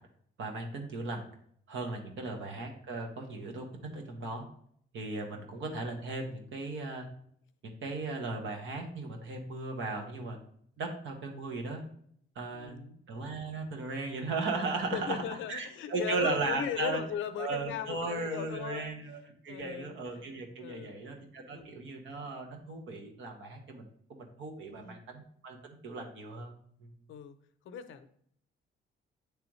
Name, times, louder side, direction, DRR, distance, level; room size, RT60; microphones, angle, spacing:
voice 1, 0.4-1.2 1.7-3.6 3.9-4.4 4.9-7.0 7.6-10.4 10.8-11.8 12.3-17.0 17.4-26.5, right 3 dB, 75° right, 3 dB, 1.4 m, -37 dB
voice 2, 12.5-13.0 14.9-18.9 19.5-20.3 20.6-21.0 21.5-21.8 24.6-25.0 27.1-27.4 27.6-28.1, left 9 dB, 80° left, 9 dB, 0.7 m, -38 dB
9.1 x 3.4 x 3.1 m, 0.65 s
cardioid pair, 90°, 20 cm